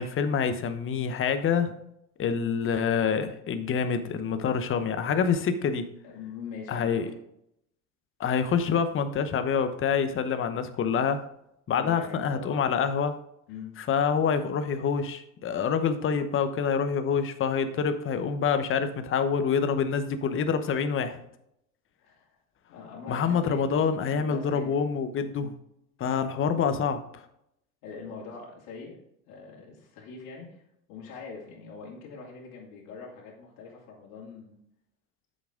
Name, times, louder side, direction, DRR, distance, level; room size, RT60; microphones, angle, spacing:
voice 1, 0.0-1.7 2.2-5.9 6.7-7.1 8.2-11.2 11.7-13.2 13.9-21.2 23.1-25.5 26.0-27.0, left 6 dB, 30° left, 10 dB, 0.9 m, -26 dB
voice 2, 6.0-7.2 11.7-12.6 13.5-13.7 22.0-22.4 22.7-24.7 25.3-25.5 27.8-29.0 29.3-34.5, left 5 dB, 60° left, -4 dB, 2.7 m, -43 dB
8.2 x 6.4 x 3.7 m, 0.78 s
hypercardioid pair, 90°, 41 cm